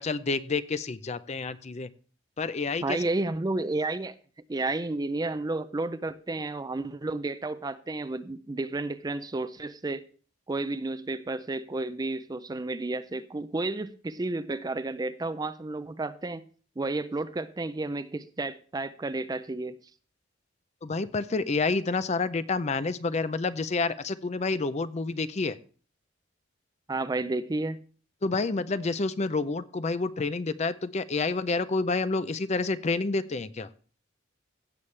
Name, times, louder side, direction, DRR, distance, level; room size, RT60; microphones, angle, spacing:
voice 1, 0.0-1.9 2.4-3.0 20.8-25.6 28.2-33.7, left 3 dB, 35° left, 0.5 m, -29 dB
voice 2, 2.8-4.1 4.5-10.0 10.5-16.4 16.8-19.8 26.9-27.8, right 2 dB, 20° right, 0.4 m, -31 dB
16.5 x 7.1 x 3.2 m
head